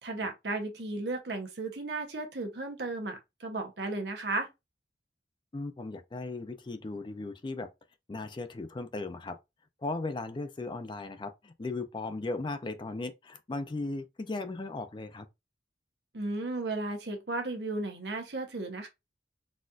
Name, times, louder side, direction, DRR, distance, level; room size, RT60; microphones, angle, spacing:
voice 1, 0.0-4.5 16.1-18.9, right 2 dB, 70° right, 0.9 m, -34 dB
voice 2, 5.5-7.7 8.1-9.4 9.8-15.3, left 3 dB, 25° left, 0.4 m, -37 dB
4.1 x 2.5 x 2.4 m
head